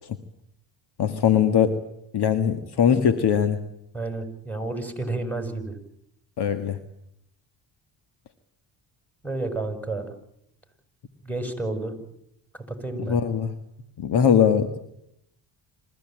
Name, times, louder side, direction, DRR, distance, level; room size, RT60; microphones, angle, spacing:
voice 1, 1.0-1.8 2.1-3.6 6.4-6.8 13.0-13.5 14.0-14.8, left 8 dB, 55° left, 9 dB, 1.9 m, -21 dB
voice 2, 3.9-5.7 9.2-10.1 11.2-11.9 12.7-13.2, right 2 dB, 5° left, 7 dB, 6.7 m, -30 dB
27.0 x 15.5 x 9.1 m, 0.76 s
supercardioid pair, 75°, 46 cm